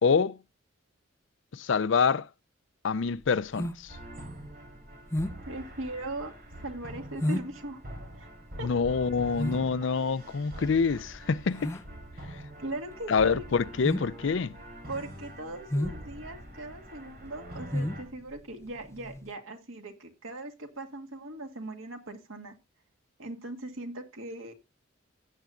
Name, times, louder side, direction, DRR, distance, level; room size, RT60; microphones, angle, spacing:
voice 1, 0.0-0.4 1.5-2.3 2.8-3.9 8.6-11.7 13.1-14.6, left 5 dB, 65° left, 0.5 m, -26 dB
sound 1, 2.9-19.3, left 1 dB, 15° left, 0.6 m, -35 dB
sound 2, 3.9-18.0, right 1 dB, 45° right, 3.8 m, -45 dB
voice 2, 5.4-6.3 6.6-7.8 8.1-8.3 8.6-8.7 12.6-13.5 14.9-22.5 23.2-24.5, right 1 dB, 90° right, 2.1 m, -39 dB
16.5 x 8.2 x 2.5 m
head